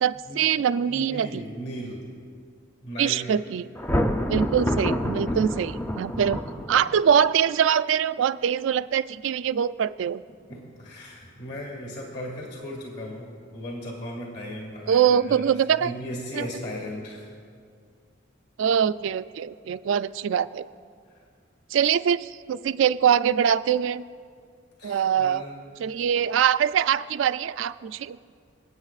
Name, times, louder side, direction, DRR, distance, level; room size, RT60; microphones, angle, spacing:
voice 1, 0.0-1.4 3.0-3.7 4.3-6.4 6.7-10.2 14.9-15.9 16.3-16.5 18.6-20.7 21.7-24.0 24.8-25.4 25.8-28.2, right 8 dB, 70° right, 14 dB, 0.3 m, -23 dB
voice 2, 0.9-2.0 2.8-3.3 4.6-4.7 5.2-5.5 10.5-15.4 15.8-17.3 24.8-25.6 25.9-26.0, equal, 60° left, -1 dB, 2.1 m, -37 dB
Thunder, 3.7-7.1, equal, 10° left, 0.5 m, -27 dB
27.0 x 9.0 x 2.4 m, 2.1 s
head